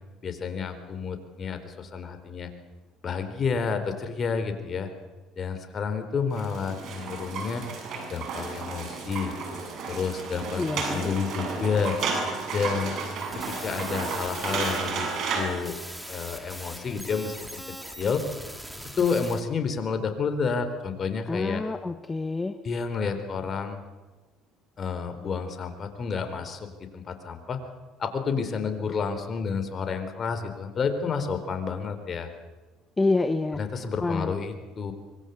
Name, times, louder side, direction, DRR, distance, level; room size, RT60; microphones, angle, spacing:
voice 1, 0.2-2.5 3.0-4.9 5.4-7.7 8.1-9.3 9.9-12.0 12.5-13.0 13.4-15.8 16.1-18.2 19.0-21.6 22.6-23.8 24.8-27.6 28.0-32.3 33.5-34.9, left 5 dB, 40° left, 8 dB, 4.1 m, -30 dB
sound 1, 6.3-15.4, right 4 dB, 60° right, 7.9 m, -32 dB
voice 2, 10.6-11.1 21.3-22.5 33.0-33.6 34.0-34.3, left 3 dB, 20° left, 9 dB, 1.2 m, -27 dB
sound 2, 13.2-19.4, equal, 5° right, 3.1 m, -41 dB
25.0 x 23.0 x 8.2 m, 1.2 s
supercardioid pair, 90°, 0 cm